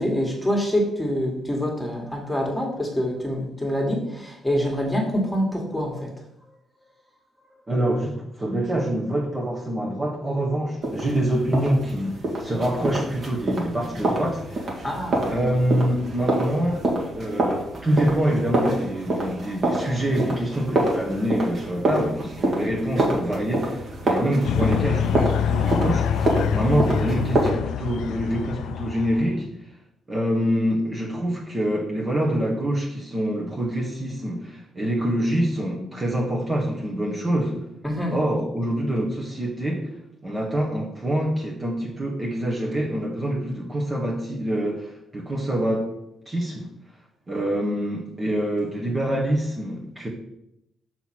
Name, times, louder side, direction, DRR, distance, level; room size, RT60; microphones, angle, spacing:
voice 1, 0.0-6.1 14.8-15.3 37.8-38.1, equal, 5° left, 0 dB, 2.0 m, -25 dB
voice 2, 7.7-14.8 15.3-16.8 17.1-26.3 26.5-29.5 30.1-37.6 38.1-39.9 40.2-45.9 46.3-46.7 47.3-50.1, right 1 dB, 25° right, -2 dB, 1.4 m, -25 dB
sound 1, 10.8-27.5, right 1 dB, 50° right, 2.0 m, -27 dB
sound 2, 24.4-29.3, left 9 dB, 80° left, 0.4 m, -25 dB
5.6 x 4.4 x 6.1 m, 0.82 s
cardioid pair, 90°, 0 cm